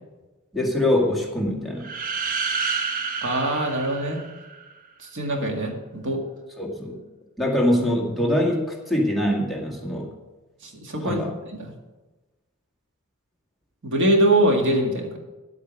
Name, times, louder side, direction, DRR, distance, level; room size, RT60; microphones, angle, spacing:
voice 1, 0.5-1.9 6.6-7.0 7.4-10.1 11.0-11.3, left 1 dB, ahead, -3 dB, 2.0 m, -23 dB
sound 1, 1.8-4.7, right 5 dB, 40° right, 0.9 m, -29 dB
voice 2, 3.2-4.2 5.1-6.2 10.6-11.2 11.5-11.7 13.8-15.2, right 1 dB, 60° right, 2 dB, 2.0 m, -23 dB
10.5 x 8.4 x 6.2 m, 1.2 s
head